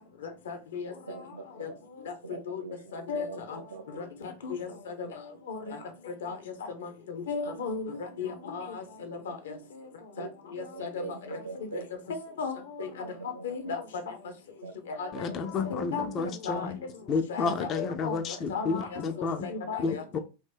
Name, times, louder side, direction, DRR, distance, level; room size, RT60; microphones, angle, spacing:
voice 1, 0.5-0.9 1.6-1.7 2.5-2.6 2.9-3.6 4.0-4.1 4.4-5.1 5.5-5.8 6.1-6.4 6.8-7.9 8.2-9.5 10.2-10.3 10.5-11.0 11.3-11.4 11.7-11.8 12.1-12.5 12.8-12.9 13.4-13.8 15.0-15.1 15.7-16.7 17.3-18.2 18.5-19.0 19.4-20.0, left 5 dB, 60° left, 7 dB, 0.7 m, -35 dB
voice 2, 1.1-1.8 2.2-3.8 4.7-5.1 5.7-5.8 6.3-6.4 7.9-8.0 9.3-9.4 10.2-10.3 10.6-11.9 12.8-13.7 14.6-14.7 15.6-16.0 19.2-19.4, right 4 dB, 75° right, 2 dB, 0.4 m, -43 dB
voice 3, 15.1-16.8 17.1-19.5 19.8-20.2, left 4 dB, 30° left, 8 dB, 0.4 m, -31 dB
2.8 x 2.6 x 3.5 m, 0.30 s
figure-of-eight pair, 90°, 0 cm